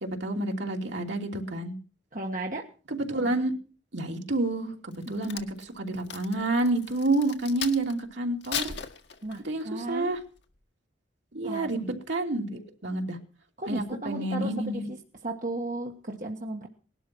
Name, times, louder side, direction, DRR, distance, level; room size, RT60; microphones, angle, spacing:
voice 1, 0.0-1.7 2.9-3.5 3.9-8.7 9.4-10.2 11.3-13.2 13.7-14.8, right 2 dB, 70° right, 2 dB, 2.9 m, -29 dB
voice 2, 2.1-2.7 9.2-10.2 11.4-11.7 13.6-15.0 15.2-16.7, right 1 dB, 45° right, 2 dB, 1.5 m, -35 dB
Crack, 4.9-8.0 8.4-9.6 10.1-10.4, left 8 dB, 65° left, 1.7 m, -37 dB
19.5 x 12.0 x 6.1 m, 0.39 s
head